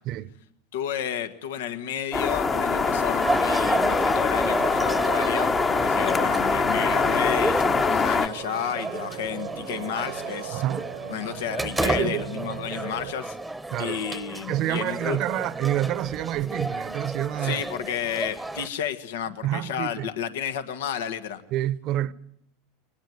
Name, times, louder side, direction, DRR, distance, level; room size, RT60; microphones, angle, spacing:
voice 1, 0.7-10.6 11.1-13.4 13.8-15.2 17.4-21.4, left 9 dB, 85° left, 1.8 m, -31 dB
sound 1, 2.1-8.3, left 4 dB, 25° left, 1.1 m, -23 dB
sound 2, 2.4-13.1, right 16 dB, 75° right, 1.1 m, -38 dB
sound 3, 3.2-18.7, right 2 dB, 5° right, 1.0 m, -32 dB
voice 2, 10.5-10.9 11.8-12.2 13.7-14.0 14.5-17.6 19.4-20.1 21.5-22.1, right 13 dB, 50° right, 0.9 m, -28 dB
24.5 x 20.0 x 9.4 m
supercardioid pair, 115°, 0 cm